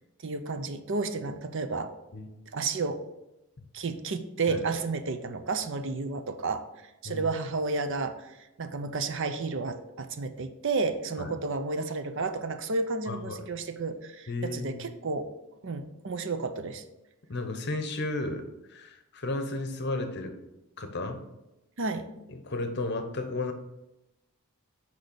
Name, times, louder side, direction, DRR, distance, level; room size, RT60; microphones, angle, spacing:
voice 1, 0.2-1.9 2.5-3.1 3.7-6.6 7.0-15.4 15.6-16.8 21.8-22.1, right 3 dB, 55° right, 9 dB, 0.7 m, -31 dB
voice 2, 13.1-13.5 14.3-14.9 17.3-20.4 20.8-21.2 22.3-23.5, left 2 dB, 50° left, 7 dB, 0.9 m, -33 dB
6.5 x 5.1 x 6.8 m, 0.96 s
head